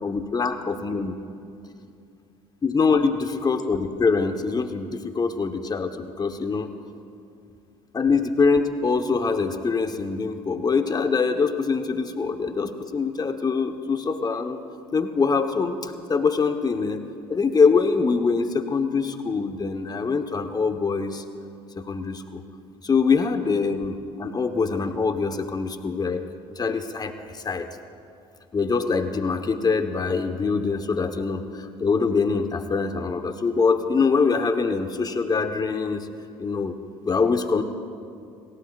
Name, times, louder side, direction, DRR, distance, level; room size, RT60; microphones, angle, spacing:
voice 1, 0.0-1.2 2.6-6.7 7.9-14.6 14.9-17.0 17.3-21.2 21.8-22.4 22.8-26.2 26.6-27.7 28.5-36.1 36.4-36.8 37.0-37.6, left 4 dB, 30° left, 7 dB, 1.1 m, -24 dB
26.5 x 16.5 x 2.5 m, 2.5 s
hypercardioid pair, 65°, 13 cm